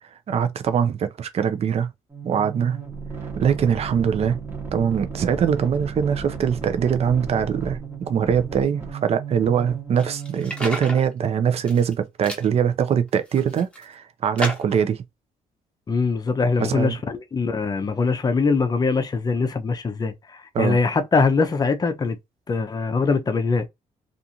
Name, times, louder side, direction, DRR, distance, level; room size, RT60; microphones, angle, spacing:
voice 1, 0.3-1.9 2.2-2.8 3.4-4.4 4.7-7.8 8.1-15.0 16.6-17.0 20.5-20.8, right 7 dB, 50° right, 0.5 m, -22 dB
sound 1, 2.1-10.7, right 6 dB, 15° right, 1.0 m, -34 dB
sound 2, 10.0-11.0 11.5-11.9 12.2-12.5 13.1-13.8 14.4-14.9, left 1 dB, 10° left, 1.0 m, -32 dB
voice 2, 15.9-22.2 22.5-23.7, left 4 dB, 30° left, 0.6 m, -22 dB
2.5 x 2.5 x 2.8 m
cardioid pair, 105°, 14 cm